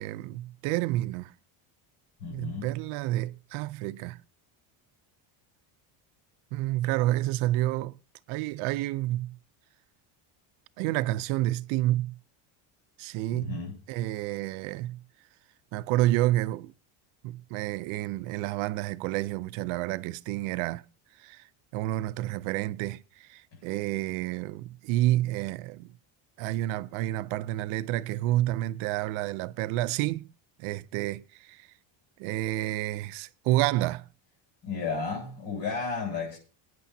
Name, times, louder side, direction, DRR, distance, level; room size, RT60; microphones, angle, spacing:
voice 1, 0.0-1.3 2.3-4.2 6.5-8.0 8.3-9.4 10.8-12.2 13.0-13.6 13.9-15.0 15.7-16.7 17.2-20.8 21.2-21.5 21.7-25.9 26.4-30.3 30.6-31.7 32.2-34.1, right 16 dB, 85° right, 0.7 m, -29 dB
voice 2, 2.2-2.7 13.3-13.8 23.5-23.6 34.6-36.4, left 4 dB, 65° left, 8.0 m, -33 dB
24.5 x 9.5 x 2.8 m
cardioid pair, 140°, 48 cm